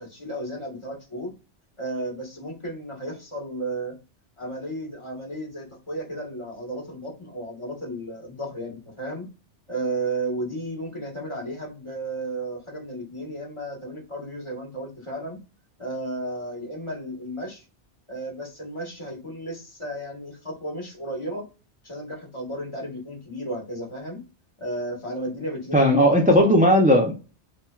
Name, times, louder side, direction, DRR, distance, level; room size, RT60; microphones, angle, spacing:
voice 1, 0.0-1.3 1.8-3.9 4.4-9.3 9.7-15.4 15.8-17.6 18.1-21.5 21.8-24.2 24.6-26.5, right 1 dB, 25° left, -1 dB, 1.3 m, -33 dB
voice 2, 25.7-27.1, equal, 15° right, 1 dB, 0.3 m, -16 dB
5.5 x 2.2 x 2.3 m, 0.31 s
omnidirectional pair, 1.2 m